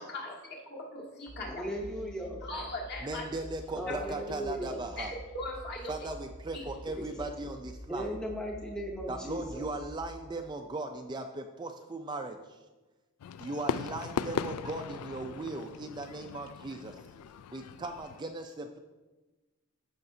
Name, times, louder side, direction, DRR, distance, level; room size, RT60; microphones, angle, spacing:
voice 1, 0.0-1.6 2.4-3.3 3.9-4.0 5.0-5.9 6.5-6.6, left 2 dB, 45° left, -3 dB, 1.8 m, -39 dB
sound 1, 1.3-10.1, equal, 65° left, 2.7 m, -47 dB
voice 2, 1.5-2.4 3.8-4.8 6.9-7.3 7.9-9.7, equal, 5° left, -1 dB, 0.7 m, -37 dB
voice 3, 3.0-5.1 5.9-8.1 9.1-12.6 13.4-17.1 17.5-18.8, right 2 dB, 20° right, 5 dB, 0.3 m, -38 dB
Fireworks, 13.2-18.2, left 7 dB, 90° left, 0.3 m, -38 dB
14.5 x 5.8 x 2.7 m, 1.2 s
head